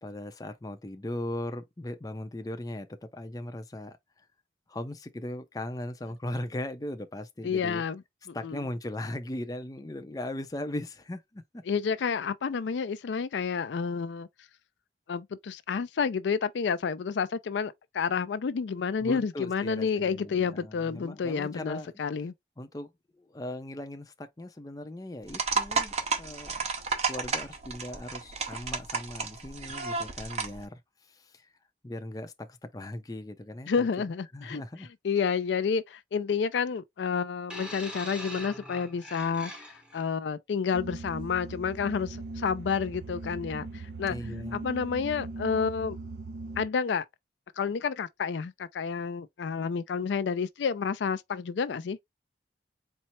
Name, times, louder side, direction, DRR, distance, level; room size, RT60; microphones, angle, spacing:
voice 1, 0.0-4.0 4.7-7.8 8.3-11.4 12.0-12.1 19.0-21.9 22.6-22.9 23.2-26.7 27.1-30.8 31.1-31.5 31.8-33.9 34.3-34.9 44.1-44.6, left 1 dB, 20° left, 0.5 m, -38 dB
voice 2, 7.4-8.0 8.3-8.6 11.7-14.3 15.1-22.3 33.7-34.6 35.0-44.2 44.5-46.0 46.6-47.0 47.6-52.0, left 6 dB, 80° left, 0.4 m, -30 dB
sound 1, 25.3-30.6, right 5 dB, 35° right, 0.7 m, -32 dB
sound 2, 37.5-40.0 41.0-41.1, equal, 5° right, 0.9 m, -42 dB
sound 3, 40.7-46.7, right 3 dB, 75° right, 0.8 m, -40 dB
4.4 x 2.0 x 4.2 m
head